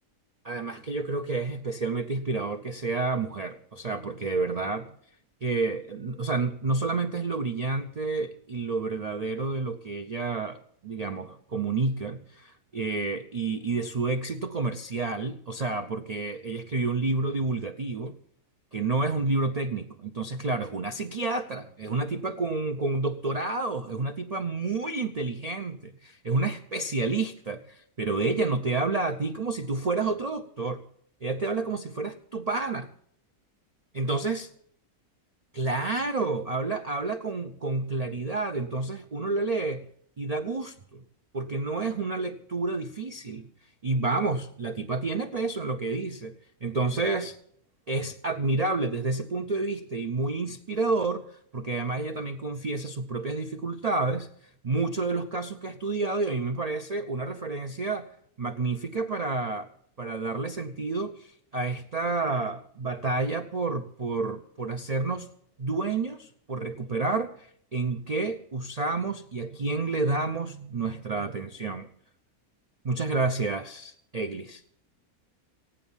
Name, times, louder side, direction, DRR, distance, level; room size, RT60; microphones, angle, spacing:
voice 1, 0.4-5.0 5.4-18.2 18.7-30.8 31.2-32.9 33.9-34.5 35.5-39.9 40.2-41.0 41.3-43.5 43.8-47.4 47.9-51.3 51.5-54.3 54.6-58.1 58.4-59.7 60.0-65.3 65.6-71.9 72.8-74.6, right 3 dB, 65° right, 6 dB, 0.3 m, -29 dB
15.5 x 9.9 x 7.1 m, 0.66 s
omnidirectional pair, 1.6 m